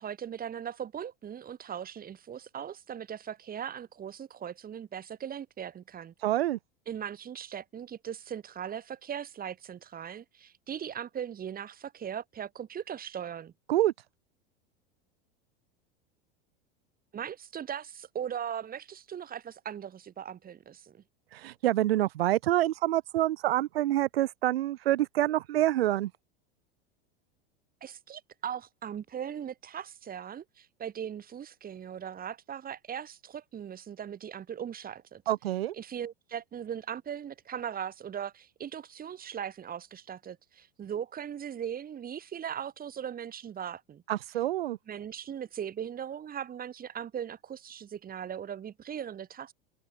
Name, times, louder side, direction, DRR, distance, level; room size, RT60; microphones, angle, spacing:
voice 1, 0.0-6.1 6.9-13.5 17.1-21.0 27.8-35.2 35.7-44.0 44.9-49.5, right 9 dB, 30° right, 6.6 m, -39 dB
voice 2, 6.2-6.6 13.7-13.9 21.3-26.1 35.3-35.7 44.1-44.8, right 14 dB, 85° right, 1.5 m, -27 dB
hypercardioid pair, 110°, 29 cm